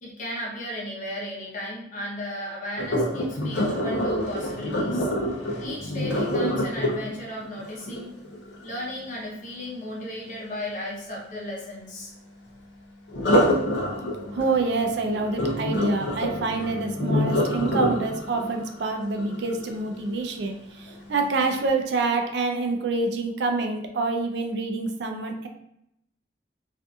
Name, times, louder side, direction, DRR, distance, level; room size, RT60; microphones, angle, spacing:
voice 1, 0.0-5.1 5.6-8.1 8.6-12.1, left 1 dB, 45° left, -3 dB, 0.8 m, -35 dB
Sink (filling or washing), 2.8-8.7 13.1-20.1 20.7-21.0 21.5-21.6, equal, 90° left, 0.6 m, -27 dB
voice 2, 14.3-25.5, right 3 dB, 70° right, 4 dB, 0.4 m, -27 dB
2.6 x 2.4 x 2.3 m, 0.79 s
head